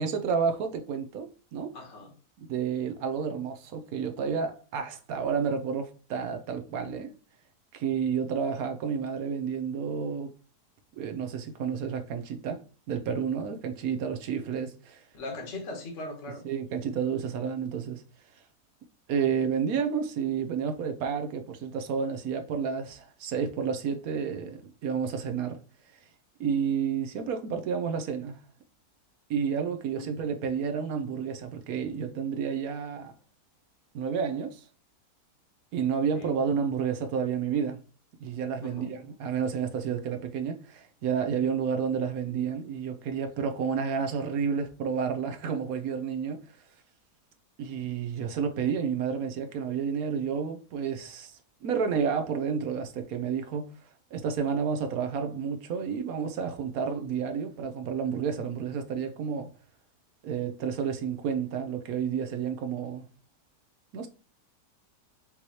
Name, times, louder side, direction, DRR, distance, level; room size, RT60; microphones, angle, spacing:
voice 1, 0.0-1.7 2.5-7.1 7.7-10.3 11.0-15.0 16.4-18.0 19.1-25.6 26.4-28.4 29.3-33.1 33.9-34.7 35.7-37.8 38.2-46.4 47.6-53.7 54.1-59.5 60.2-63.1 63.9-64.1, right 6 dB, 70° right, 1.1 m, -30 dB
voice 2, 1.7-2.1 15.1-16.4 30.0-30.3 36.1-36.3 38.6-38.9, left 2 dB, 50° left, 1.4 m, -39 dB
5.3 x 3.1 x 2.8 m
omnidirectional pair, 1.7 m